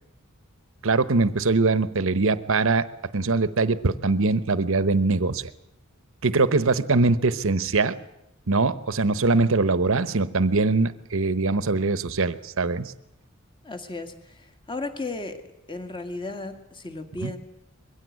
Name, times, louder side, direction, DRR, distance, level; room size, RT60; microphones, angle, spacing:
voice 1, 0.8-2.9 3.1-5.5 6.2-8.0 8.5-12.9 17.2-17.3, right 3 dB, 65° right, 14 dB, 1.0 m, -22 dB
voice 2, 13.6-15.4 15.7-17.4, left 2 dB, 25° left, 8 dB, 1.9 m, -35 dB
22.0 x 16.0 x 9.4 m, 0.88 s
head